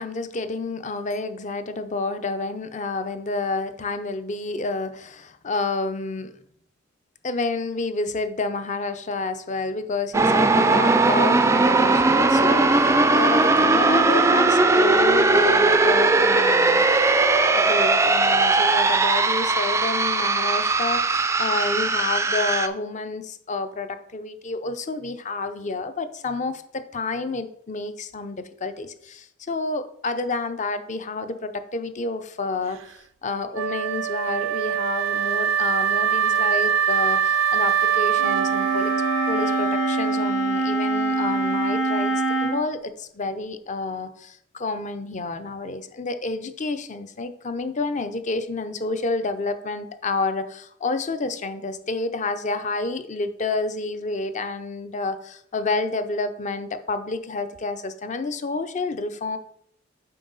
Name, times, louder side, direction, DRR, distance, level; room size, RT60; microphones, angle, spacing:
voice 1, 0.0-6.3 7.2-16.8 17.6-32.8 33.2-38.9 39.3-42.1 42.4-59.4, left 3 dB, 40° left, 10 dB, 0.6 m, -29 dB
sound 1, 10.1-22.7, right 3 dB, 15° right, 0.3 m, -19 dB
Wind instrument woodwind instrument, 33.5-40.5, right 8 dB, 90° right, 0.4 m, -23 dB
Wind instrument woodwind instrument 2, 38.2-42.6, right 2 dB, 70° left, 1.1 m, -24 dB
7.7 x 5.4 x 3.9 m, 0.70 s
head